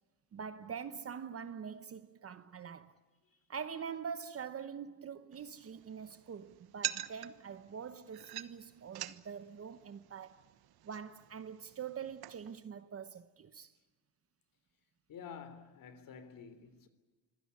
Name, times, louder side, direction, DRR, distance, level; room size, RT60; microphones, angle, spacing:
voice 1, 0.3-2.9 3.5-10.4 10.8-13.7, right 7 dB, 35° right, 1.0 m, -44 dB
sound 1, 5.3-12.6, right 13 dB, 65° right, 1.2 m, -46 dB
voice 2, 15.1-16.9, left 6 dB, 55° left, 3.5 m, -49 dB
25.5 x 17.0 x 9.8 m
cardioid pair, 135°, 40 cm